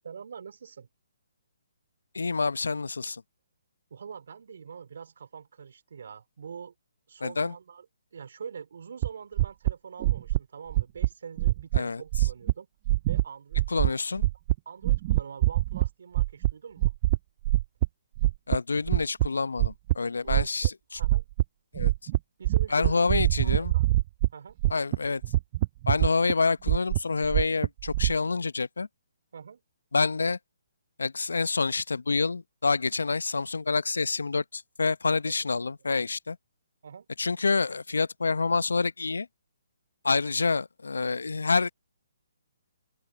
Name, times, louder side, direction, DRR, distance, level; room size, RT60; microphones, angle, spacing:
voice 1, 0.0-0.9 3.9-6.7 7.1-7.8 8.1-12.7 13.1-14.1 14.6-16.9 20.2-21.3 22.4-24.0 24.3-24.6 29.3-29.6 35.4-35.7 36.8-37.1, right 6 dB, 60° right, 3.3 m, -44 dB
voice 2, 2.1-3.2 7.2-7.5 11.7-12.0 13.7-14.2 18.5-21.0 21.7-21.9 22.7-23.7 24.7-25.2 25.9-28.9 29.9-30.4 31.0-36.4 37.2-39.3 40.0-41.7, left 4 dB, 75° left, 0.8 m, -27 dB
sound 1, 9.0-9.1 9.4-9.7 10.0-10.4 10.7-11.1 11.4-11.8 12.1-12.5 12.9-13.2 13.5-13.9 14.2-14.6 14.8-15.9 16.1-16.5 16.8-17.2 17.5-17.9 18.2-19.3 19.6-19.9 20.3-20.7 21.0-21.4 21.7-22.2 22.4-24.3 24.6-25.0 25.2-26.3 26.7-28.1, right 17 dB, 35° right, 0.3 m, -24 dB
open air
figure-of-eight pair, 140°, 0 cm